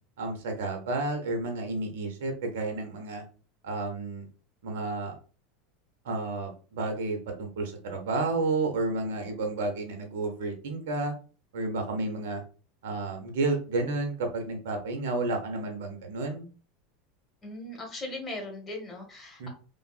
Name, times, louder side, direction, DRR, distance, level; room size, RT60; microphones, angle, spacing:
voice 1, 0.2-3.2 3.6-4.3 4.6-5.1 6.0-11.1 11.5-12.4 12.8-16.5 19.4-19.5, right 3 dB, 60° right, 3 dB, 0.6 m, -31 dB
voice 2, 17.4-19.5, left 2 dB, 25° left, 1 dB, 1.0 m, -39 dB
2.6 x 2.5 x 2.4 m, 0.38 s
figure-of-eight pair, 80°, 0 cm